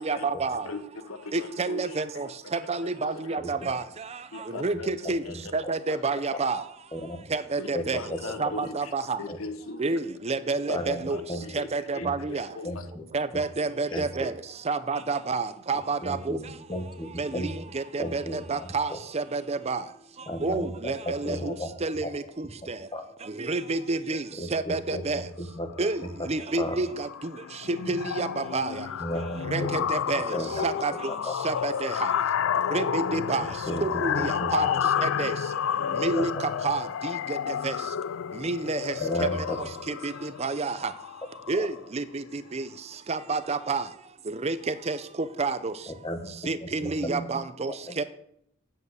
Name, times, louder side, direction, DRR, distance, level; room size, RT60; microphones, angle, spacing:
voice 1, 0.0-0.7 1.3-3.8 4.5-5.2 5.5-6.6 7.3-8.0 8.4-9.2 9.8-11.2 11.5-12.5 13.1-14.3 14.7-16.4 17.2-19.8 20.4-22.8 23.4-24.2 24.5-25.2 25.8-27.1 27.7-28.9 29.5-30.3 30.6-30.9 31.4-32.1 32.7-33.5 33.8-34.7 35.0-35.3 36.0-36.3 36.6-37.8 38.4-38.9 39.2-39.3 39.9-40.9 41.5-42.7 43.1-43.8 44.3-45.0 45.4-45.7 46.5-48.0, right 3 dB, 30° right, 0.6 m, -29 dB
voice 2, 0.6-2.3 2.8-3.4 4.3-5.5 5.9-6.0 7.6-9.8 11.1-12.9 13.9-14.0, left 3 dB, 85° left, 1.1 m, -40 dB
voice 3, 5.0-5.4 6.9-7.2 7.7-8.2 9.3-9.4 10.7-11.0 11.3-11.4 12.0-12.1 12.6-13.0 13.9-14.3 16.0-17.5 18.0-19.0 20.3-21.7 22.0-22.1 22.9-23.0 24.3-25.7 26.6-26.8 29.0-29.9 30.1-30.6 31.1-31.3 33.4-34.5 35.0-35.1 36.1-36.4 39.0-39.6 41.6-41.7 45.9-46.3 46.6-47.4 47.8-48.0, equal, 25° left, 1.5 m, -34 dB
sound 1, 25.8-26.1 26.4-26.6 26.9-41.8, left 8 dB, 65° left, 0.3 m, -30 dB
9.2 x 7.8 x 8.1 m
head